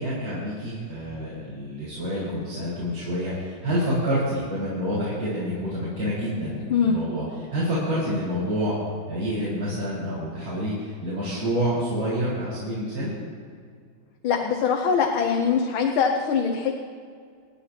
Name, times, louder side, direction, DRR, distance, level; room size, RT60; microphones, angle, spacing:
voice 1, 0.0-7.2 7.5-8.7 9.1-13.1, equal, 85° right, -11 dB, 5.5 m, -28 dB
voice 2, 6.7-7.0 14.2-16.8, left 6 dB, 85° left, 2 dB, 1.8 m, -22 dB
29.5 x 10.0 x 2.9 m, 2.1 s
omnidirectional pair, 2.2 m